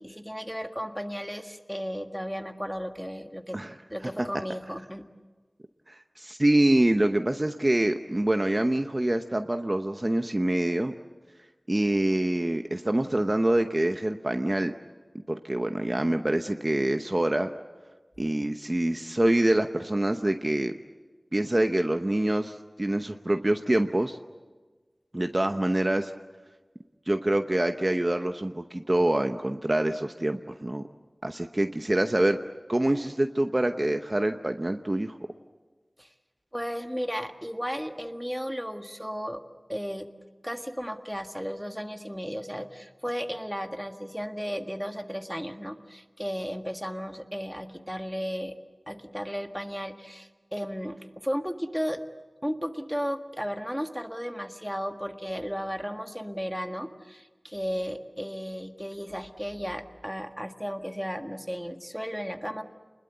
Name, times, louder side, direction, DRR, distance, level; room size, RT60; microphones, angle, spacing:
voice 1, 0.0-3.6 3.9-5.1 18.9-19.0 36.0-36.1 36.5-39.4 39.7-40.1 40.4-48.5 48.9-52.0 52.4-62.6, equal, ahead, 6 dB, 1.7 m, -34 dB
voice 2, 5.9-10.9 11.7-14.7 15.1-17.5 18.2-20.8 21.3-24.2 25.1-26.1 27.1-30.8 31.2-32.4 32.7-35.2, right 1 dB, 35° right, 6 dB, 0.9 m, -25 dB
28.0 x 21.0 x 8.1 m, 1.3 s
wide cardioid pair, 55°, 0 cm